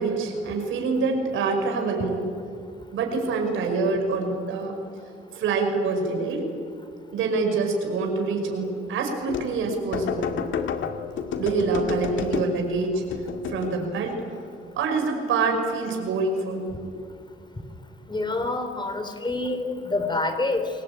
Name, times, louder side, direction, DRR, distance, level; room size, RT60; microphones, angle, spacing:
voice 1, 0.0-2.3 2.9-4.8 5.3-6.5 7.1-10.3 11.4-13.0 13.5-14.4 14.8-16.9, right 4 dB, 85° right, 3 dB, 5.5 m, -26 dB
sound 1, 9.3-9.6 9.9-12.7 13.1-13.8, left 7 dB, 75° left, 2.3 m, -30 dB
voice 2, 18.1-20.7, left 2 dB, 20° left, 8 dB, 3.8 m, -27 dB
29.0 x 21.0 x 8.9 m, 2.4 s
cardioid pair, 90°, 20 cm